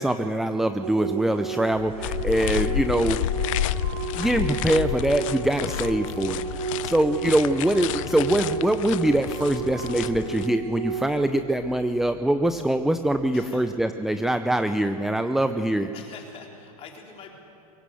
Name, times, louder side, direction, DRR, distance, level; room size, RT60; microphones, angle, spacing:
voice 1, 0.0-3.2 4.2-6.4 6.8-15.9, right 1 dB, ahead, 8 dB, 0.6 m, -23 dB
sound 1, 0.8-11.3, right 6 dB, 85° right, 2.9 m, -33 dB
sound 2, 1.6-13.3, right 3 dB, 65° right, 2.9 m, -44 dB
sound 3, 2.0-10.5, left 14 dB, 55° left, 0.6 m, -30 dB
voice 2, 13.3-13.7 14.1-14.2 15.9-17.4, left 6 dB, 30° left, 1 dB, 3.8 m, -45 dB
23.5 x 16.5 x 7.8 m, 2.7 s
hypercardioid pair, 125°, 20 cm